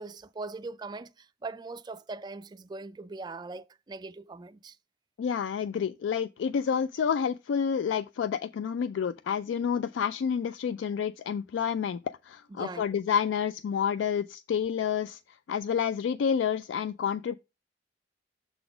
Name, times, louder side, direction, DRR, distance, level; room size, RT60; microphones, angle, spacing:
voice 1, 0.0-4.8 12.5-13.0, right 3 dB, 20° right, 0.3 m, -41 dB
voice 2, 5.2-15.2 15.5-17.4, left 7 dB, 75° left, 0.3 m, -29 dB
6.8 x 4.0 x 4.9 m
head